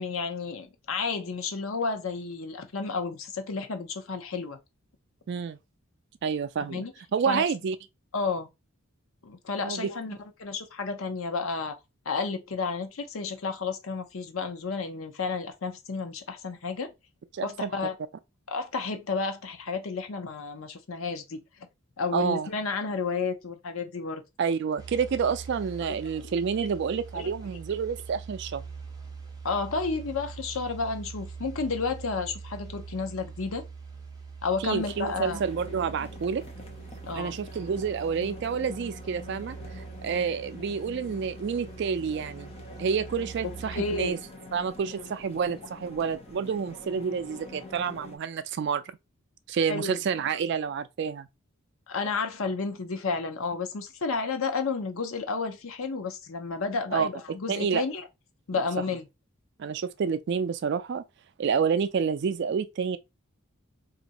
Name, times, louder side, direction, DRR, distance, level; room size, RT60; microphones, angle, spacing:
voice 1, 0.0-4.6 6.7-6.9 7.3-7.4 8.1-8.5 9.2-11.8 12.1-16.9 17.4-18.0 18.5-21.4 22.0-24.2 26.1-26.3 27.1-27.3 29.4-33.6 34.4-35.4 37.1-37.4 43.7-44.2 49.7-50.0 51.9-58.0 58.5-59.1, left 4 dB, 70° left, 0.7 m, -31 dB
voice 2, 5.3-5.6 6.2-6.9 7.1-7.8 9.6-9.9 17.3-17.7 22.1-22.5 24.4-28.6 34.6-36.4 37.1-42.5 42.8-44.2 44.5-48.8 49.5-51.3 56.9-57.1 57.5-57.8 58.5-58.6 59.6-61.0 61.4-63.0, right 6 dB, 55° right, 0.3 m, -29 dB
sound 1, 24.8-44.1, right 5 dB, 20° right, 0.7 m, -43 dB
sound 2, 34.8-48.2, left 2 dB, 30° left, 0.6 m, -46 dB
2.7 x 2.5 x 4.0 m
head